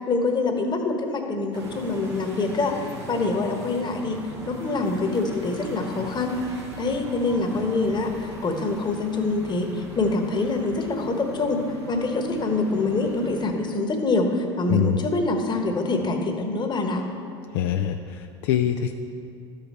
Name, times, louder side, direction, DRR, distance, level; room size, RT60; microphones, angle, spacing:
voice 1, 0.1-4.2 4.5-6.4 6.8-17.0, left 3 dB, 35° left, 4 dB, 1.2 m, -25 dB
sound 1, 1.5-13.5, right 3 dB, 85° right, 1.4 m, -40 dB
voice 2, 14.7-15.1 17.5-18.9, left 9 dB, 70° left, 6 dB, 0.4 m, -24 dB
12.5 x 5.1 x 4.4 m, 2.5 s
hypercardioid pair, 75°, 14 cm